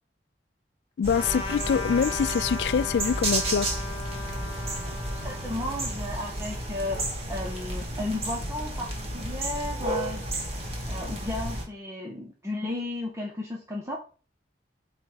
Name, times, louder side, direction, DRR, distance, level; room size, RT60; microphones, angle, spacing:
voice 1, 1.0-3.7, left 6 dB, 70° left, 0.3 m, -25 dB
sound 1, 1.0-11.6, right 1 dB, 35° right, 1.9 m, -32 dB
Trumpet, 1.1-7.0, left 2 dB, 30° left, 1.2 m, -38 dB
voice 2, 5.2-7.0 7.3-10.3 10.9-14.0, left 1 dB, 15° right, 1.1 m, -34 dB
8.3 x 3.4 x 4.8 m
head